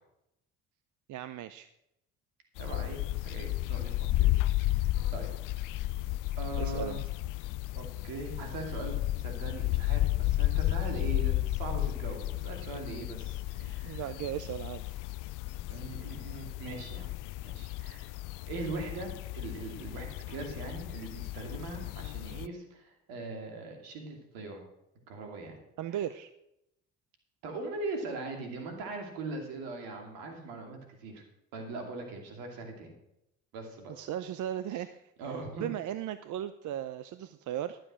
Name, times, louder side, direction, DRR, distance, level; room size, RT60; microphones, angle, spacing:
voice 1, 1.1-1.7 6.5-7.0 13.6-14.9 25.8-26.3 33.9-35.0 35.6-37.8, right 11 dB, 60° right, 13 dB, 0.6 m, -37 dB
sound 1, 2.6-22.5, left 16 dB, 65° left, 0.5 m, -33 dB
voice 2, 2.6-4.3 4.6-5.3 5.6-5.8 6.4-7.0 7.7-14.0 15.7-17.1 17.4-18.1 18.5-24.6 25.1-25.6 27.4-31.2 31.5-32.9 33.5-33.9 34.7-34.8 35.2-35.7, right 3 dB, 80° right, 3 dB, 2.7 m, -41 dB
12.0 x 7.7 x 6.2 m, 0.82 s
supercardioid pair, 65°, 35 cm